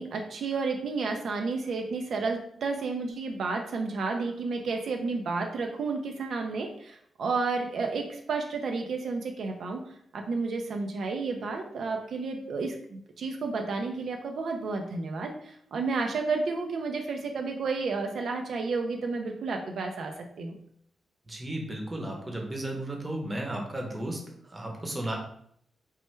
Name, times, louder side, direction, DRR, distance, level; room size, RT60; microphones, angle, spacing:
voice 1, 0.0-20.5, right 4 dB, 75° right, 3 dB, 0.3 m, -31 dB
voice 2, 21.3-25.1, right 1 dB, 25° right, 1 dB, 0.7 m, -34 dB
3.1 x 2.1 x 3.1 m, 0.69 s
cardioid pair, 90°, 0 cm